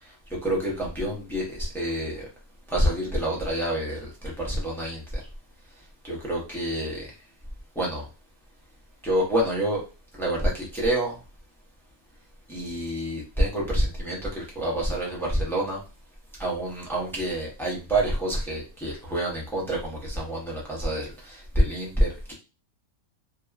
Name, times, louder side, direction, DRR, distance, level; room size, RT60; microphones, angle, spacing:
voice 1, 0.0-2.3 2.7-5.2 6.0-7.1 7.7-8.0 9.0-9.8 10.2-11.2 12.5-15.8 16.4-22.3, right 1 dB, 5° left, -4 dB, 0.4 m, -27 dB
2.8 x 2.3 x 2.3 m, 0.32 s
omnidirectional pair, 1.5 m